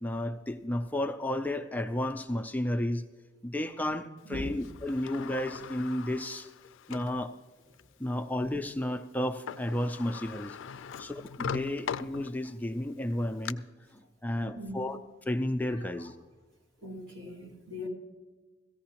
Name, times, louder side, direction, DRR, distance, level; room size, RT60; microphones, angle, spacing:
voice 1, 0.0-3.0 3.4-6.5 6.9-7.3 8.0-10.6 11.0-13.6 13.9-15.0 15.3-16.2, left 1 dB, 10° left, 0.3 m, -32 dB
Sliding door, 4.6-7.2 7.8-7.9 9.2-9.3 9.5-12.6 13.1-13.5, left 6 dB, 80° left, 0.4 m, -40 dB
voice 2, 14.4-14.9 15.7-16.1 16.8-17.9, left 1 dB, 80° right, 2.2 m, -41 dB
17.0 x 14.5 x 2.9 m
head